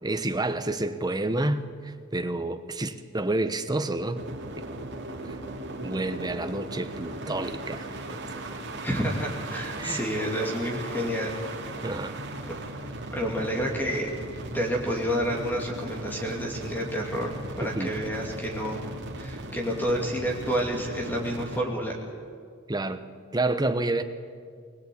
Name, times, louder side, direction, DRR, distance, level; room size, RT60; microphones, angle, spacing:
voice 1, 0.0-4.2 4.6-4.7 5.3-5.4 5.8-8.2 9.8-10.0 11.8-12.2 17.6-17.9 22.7-23.0 23.3-24.0, right 2 dB, 20° right, 9 dB, 1.0 m, -29 dB
sound 1, 4.1-21.6, right 2 dB, 55° right, 2.6 m, -37 dB
voice 2, 8.8-11.3 13.1-14.1 14.5-18.8 19.2-21.9, equal, 10° left, 0 dB, 2.6 m, -29 dB
21.0 x 20.5 x 8.6 m, 2.1 s
head